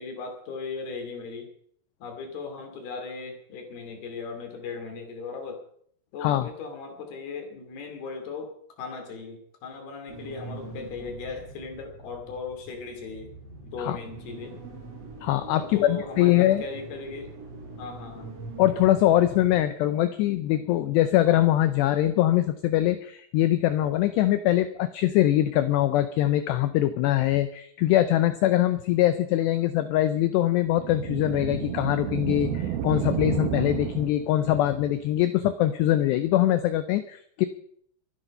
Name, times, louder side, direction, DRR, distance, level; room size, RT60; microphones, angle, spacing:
voice 1, 0.0-1.5 2.0-5.6 6.1-13.3 13.6-14.6 15.5-17.3 17.8-18.3, left 4 dB, 55° left, 4 dB, 4.3 m, -37 dB
sound 1, 10.1-19.6, right 3 dB, 35° right, 4.9 m, -43 dB
voice 2, 15.2-16.6 18.6-37.5, left 13 dB, 85° left, 12 dB, 2.4 m, -23 dB
sound 2, 30.7-34.5, right 9 dB, 85° right, 2.1 m, -31 dB
23.5 x 10.0 x 5.4 m, 0.64 s
omnidirectional pair, 5.8 m